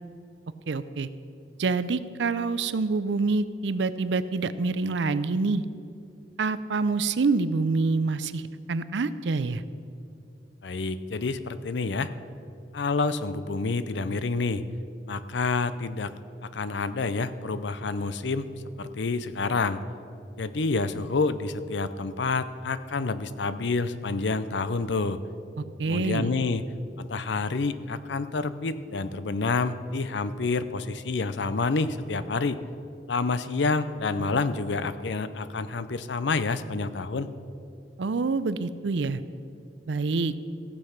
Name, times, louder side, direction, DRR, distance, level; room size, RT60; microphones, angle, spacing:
voice 1, 0.7-1.1 1.6-5.6 6.4-8.4 8.7-9.6 25.6-26.3 38.0-39.2 39.9-40.3, right 3 dB, 75° right, 14 dB, 0.5 m, -26 dB
voice 2, 10.6-12.1 12.7-14.6 15.1-16.1 16.4-18.5 18.8-19.8 20.4-25.2 25.8-26.6 27.0-32.6 33.1-37.3, left 3 dB, 75° left, 13 dB, 0.6 m, -28 dB
15.5 x 7.9 x 5.8 m, 2.6 s
head